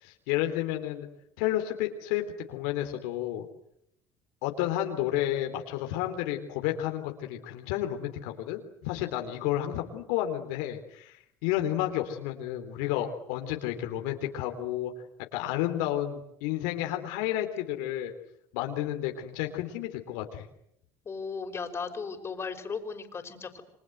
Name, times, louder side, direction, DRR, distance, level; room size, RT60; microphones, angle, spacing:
voice 1, 0.0-1.1 1.4-2.2 2.5-3.5 4.4-11.2 11.4-14.9 15.3-18.1 18.5-20.5, left 13 dB, 85° left, 4 dB, 3.5 m, -31 dB
voice 2, 21.0-23.6, left 5 dB, 30° left, 5 dB, 5.4 m, -36 dB
29.0 x 25.5 x 8.0 m, 0.78 s
supercardioid pair, 100°, 8 cm